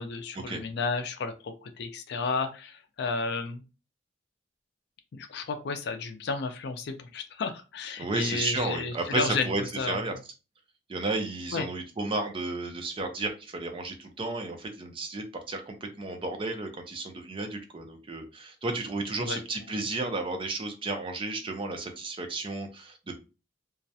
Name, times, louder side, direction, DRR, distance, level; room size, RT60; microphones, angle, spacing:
voice 1, 0.0-3.6 5.1-9.5 9.8-10.0 11.5-11.7 19.2-19.4, left 4 dB, 60° left, 8 dB, 0.4 m, -32 dB
voice 2, 8.0-10.1 10.9-23.2, right 3 dB, 30° right, 5 dB, 0.4 m, -33 dB
2.3 x 2.0 x 2.6 m, 0.31 s
head